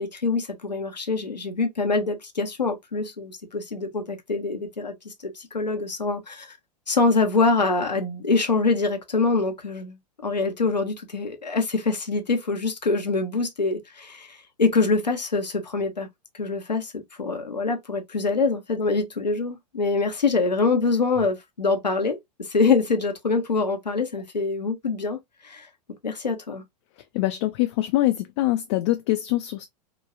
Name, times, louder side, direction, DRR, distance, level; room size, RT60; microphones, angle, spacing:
voice 1, 0.0-6.6 6.9-10.0 10.2-16.1 16.4-25.7 26.0-26.6, left 3 dB, 90° left, 0.7 m, -25 dB
voice 2, 27.1-29.6, left 16 dB, 45° left, 0.4 m, -24 dB
3.0 x 2.2 x 2.4 m
figure-of-eight pair, 95°, 21 cm